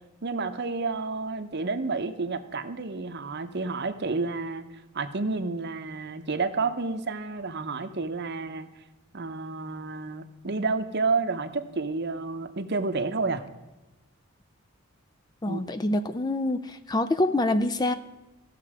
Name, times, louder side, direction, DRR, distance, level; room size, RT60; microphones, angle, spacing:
voice 1, 0.2-4.7 4.9-8.7 9.1-13.4 15.5-15.6, right 3 dB, 50° right, 10 dB, 0.8 m, -30 dB
voice 2, 15.4-18.0, left 1 dB, 20° left, 10 dB, 0.4 m, -26 dB
15.5 x 6.7 x 4.8 m, 1.1 s
head